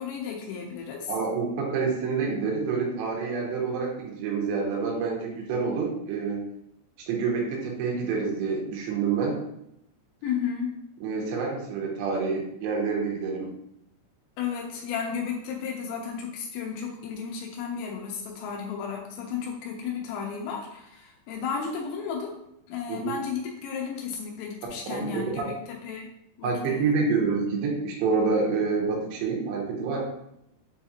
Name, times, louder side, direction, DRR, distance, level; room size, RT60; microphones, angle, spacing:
voice 1, 0.0-1.2 10.2-10.7 14.4-22.4 22.7-26.1 26.4-27.0, left 6 dB, 90° left, 0 dB, 2.9 m, -33 dB
voice 2, 1.1-6.5 7.1-9.4 11.0-13.5 22.9-23.1 24.9-25.5 26.4-30.0, right 4 dB, 85° right, -1 dB, 3.0 m, -27 dB
6.9 x 2.4 x 2.8 m, 0.79 s
omnidirectional pair, 5.1 m